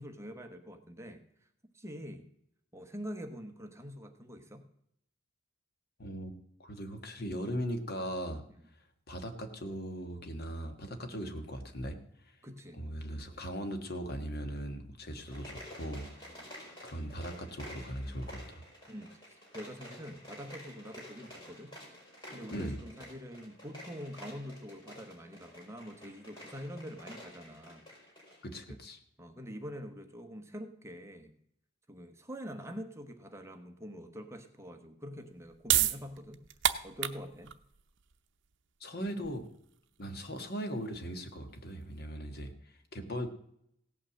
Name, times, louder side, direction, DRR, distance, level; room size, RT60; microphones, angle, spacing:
voice 1, 0.0-1.5 1.7-2.3 2.7-4.6 8.5-8.6 10.9-11.1 12.4-12.8 16.3-16.5 18.9-21.7 22.3-27.8 28.7-28.8 29.2-31.4 31.9-36.4 36.8-37.5, equal, 15° right, 6 dB, 1.0 m, -45 dB
voice 2, 6.0-6.3 6.6-8.4 9.1-12.0 12.8-16.1 16.8-18.6 22.5-22.8 28.4-29.0 38.8-39.5 40.0-42.5 42.9-43.3, equal, 55° left, 7 dB, 1.5 m, -39 dB
sound 1, 15.2-28.4, left 1 dB, 25° left, 4.6 m, -51 dB
sound 2, 35.2-42.0, right 12 dB, 65° right, 0.7 m, -34 dB
16.5 x 5.8 x 7.6 m, 0.73 s
head